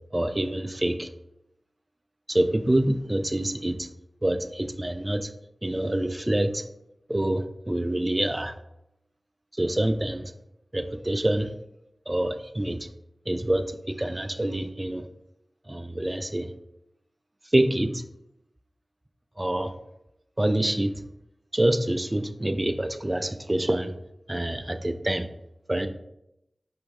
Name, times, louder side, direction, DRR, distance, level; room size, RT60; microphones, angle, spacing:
voice 1, 0.1-1.1 2.3-3.9 4.2-5.3 5.6-6.7 7.1-8.5 9.6-10.3 10.7-11.5 12.1-12.9 13.3-15.1 15.7-16.5 17.5-18.0 19.4-19.7 20.4-21.0 21.5-23.9 24.3-25.3 25.7-25.9, right 1 dB, 25° right, 9 dB, 0.4 m, -26 dB
4.7 x 3.1 x 3.6 m, 0.85 s
wide cardioid pair, 55°, 0 cm